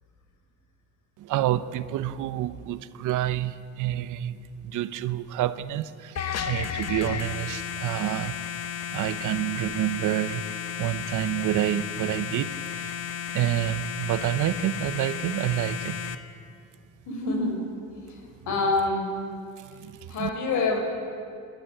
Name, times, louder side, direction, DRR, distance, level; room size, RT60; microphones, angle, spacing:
voice 1, 1.2-8.3 8.9-13.0 13.3-16.0 19.6-20.3, right 12 dB, 85° right, 14 dB, 0.9 m, -28 dB
sound 1, 6.2-16.2, left 8 dB, 55° left, 1.3 m, -33 dB
voice 2, 17.1-17.7 18.1-18.2 18.5-19.2 20.1-20.8, left 3 dB, 80° left, 3 dB, 4.5 m, -26 dB
27.0 x 12.0 x 9.2 m, 2.4 s
cardioid pair, 90°, 30 cm